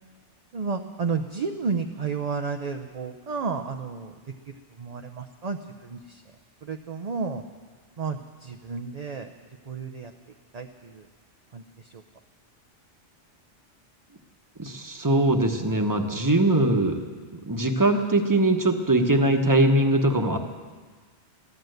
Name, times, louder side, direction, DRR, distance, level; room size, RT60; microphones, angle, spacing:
voice 1, 0.5-4.1 4.5-6.2 6.6-7.4 8.0-9.3 9.7-10.1 10.5-11.1 11.5-12.0, right 5 dB, 40° right, 5 dB, 0.6 m, -32 dB
voice 2, 14.6-17.0 17.5-20.4, right 1 dB, 15° right, 5 dB, 1.1 m, -21 dB
15.0 x 12.0 x 7.9 m, 1.5 s
omnidirectional pair, 1.2 m